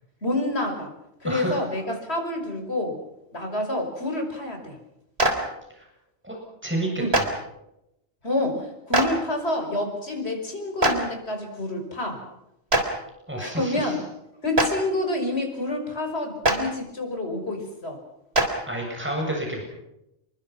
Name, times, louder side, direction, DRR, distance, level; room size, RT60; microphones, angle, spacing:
voice 1, 0.2-0.9 1.2-3.0 3.3-4.8 7.0-7.1 8.2-12.2 13.4-14.0 14.4-18.0, left 1 dB, 70° left, 4 dB, 5.9 m, -28 dB
voice 2, 1.2-1.6 5.7-5.9 6.2-6.4 6.6-7.3 13.3-13.9 18.4-19.6, right 1 dB, 10° right, 0 dB, 7.5 m, -30 dB
Clapping, 5.2-5.3 7.1-7.2 8.9-9.0 10.8-10.9 12.7-12.8 14.5-14.7 16.4-16.5 18.3-18.4, right 1 dB, 65° right, 4.0 m, -19 dB
28.5 x 23.0 x 6.0 m, 0.85 s
omnidirectional pair, 1.1 m